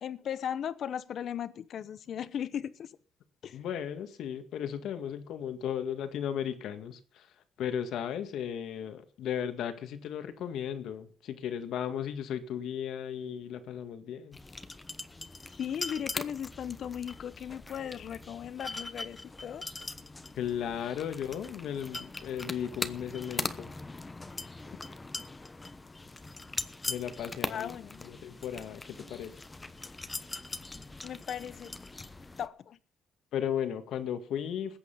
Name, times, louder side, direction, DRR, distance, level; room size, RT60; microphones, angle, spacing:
voice 1, 0.0-3.0 3.4-3.6 15.6-19.6 27.5-28.0 31.0-31.7 32.4-32.8, left 9 dB, 60° left, 0.9 m, -37 dB
voice 2, 3.5-7.3 7.6-14.4 20.3-23.7 26.9-27.7 28.0-29.4 33.3-34.8, left 9 dB, 80° left, 1.9 m, -35 dB
sound 1, 14.3-32.5, left 3 dB, 20° left, 1.0 m, -41 dB
20.5 x 8.4 x 5.7 m
cardioid pair, 115°, 0 cm